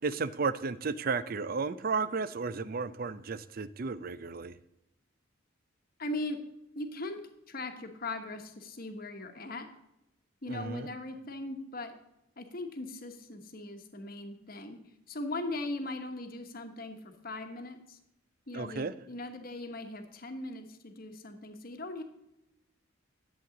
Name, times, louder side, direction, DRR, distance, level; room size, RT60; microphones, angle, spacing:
voice 1, 0.0-4.6 10.5-10.9 18.5-18.9, right 4 dB, 45° right, 15 dB, 0.5 m, -33 dB
voice 2, 6.0-6.4 6.7-9.7 10.4-11.9 12.4-14.8 15.1-18.0 18.5-22.0, left 2 dB, 45° left, 6 dB, 1.2 m, -39 dB
11.0 x 7.6 x 3.9 m, 0.89 s
head